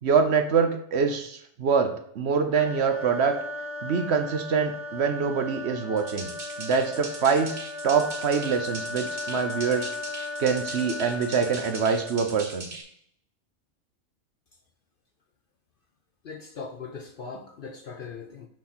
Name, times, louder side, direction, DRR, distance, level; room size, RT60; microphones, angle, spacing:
voice 1, 0.0-3.4 3.8-6.3 6.6-7.5 7.8-9.9 10.4-12.7, right 6 dB, 60° right, 0.9 m, -25 dB
sound 1, 2.5-12.5, left 2 dB, 20° left, 0.3 m, -36 dB
sound 2, 6.0-12.8, right 2 dB, 45° right, 1.4 m, -40 dB
voice 2, 16.2-18.5, left 5 dB, 55° left, 0.7 m, -39 dB
6.1 x 6.0 x 4.2 m
omnidirectional pair, 1.4 m